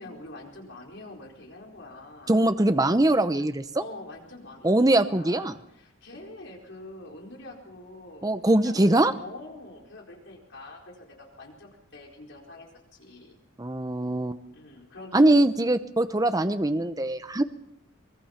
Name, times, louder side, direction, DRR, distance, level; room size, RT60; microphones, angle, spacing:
voice 1, 0.0-2.5 3.8-13.4 14.5-15.3 15.6-15.7, left 2 dB, 60° left, 0 dB, 4.6 m, -45 dB
voice 2, 2.3-3.6 4.6-5.5 8.2-9.1 13.6-14.4 15.1-17.4, right 1 dB, 20° right, 11 dB, 0.7 m, -22 dB
23.5 x 20.0 x 5.8 m, 0.79 s
head